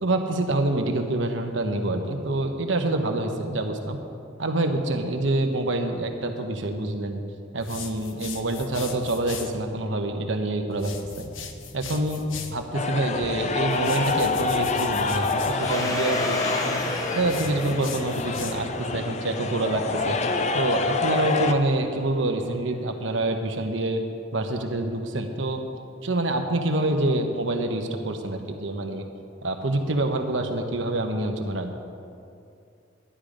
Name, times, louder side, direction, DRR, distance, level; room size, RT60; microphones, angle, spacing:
voice 1, 0.0-4.0 4.4-7.2 7.5-10.9 11.2-11.3 11.7-16.8 17.1-20.2 20.5-24.0 24.3-25.6 26.0-29.1 29.4-31.8, right 2 dB, 70° right, 5 dB, 1.1 m, -26 dB
sound 1, 7.6-9.6 10.7-12.6 13.7-15.6 17.2-18.8, left 6 dB, 80° left, 0.9 m, -39 dB
sound 2, 12.7-21.5, left 4 dB, 35° left, 0.5 m, -27 dB
Domestic sounds home sounds, 15.6-20.0, left 1 dB, 20° left, 1.0 m, -33 dB
11.5 x 10.5 x 5.1 m, 2.5 s
head